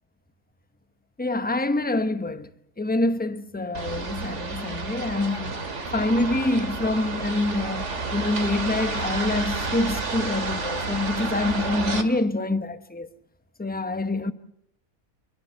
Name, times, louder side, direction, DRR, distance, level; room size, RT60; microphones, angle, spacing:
voice 1, 1.2-2.5 2.8-5.7 5.9-13.1 13.6-14.3, left 2 dB, 10° left, 0.7 m, -26 dB
sound 1, 3.7-12.0, right 3 dB, 50° right, 2.4 m, -30 dB
27.5 x 22.0 x 6.8 m
omnidirectional pair, 1.6 m